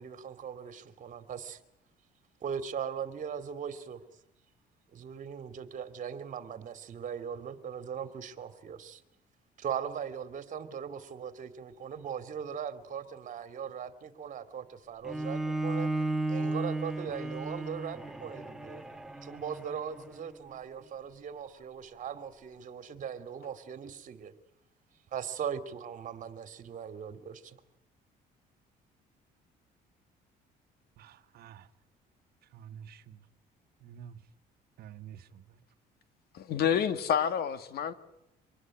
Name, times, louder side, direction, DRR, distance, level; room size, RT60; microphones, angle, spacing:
voice 1, 0.0-1.6 2.4-4.0 4.9-9.0 9.6-15.9 16.3-18.8 19.2-24.3 25.1-27.6, right 7 dB, 50° right, 2.7 m, -39 dB
Bowed string instrument, 15.0-20.3, right 2 dB, ahead, 1.8 m, -34 dB
voice 2, 31.0-31.7 32.5-33.2 33.8-34.2 34.8-35.6, right 9 dB, 65° right, 1.4 m, -49 dB
voice 3, 36.3-37.9, left 8 dB, 70° left, 2.1 m, -28 dB
25.5 x 20.0 x 9.9 m
cardioid pair, 110°, 17 cm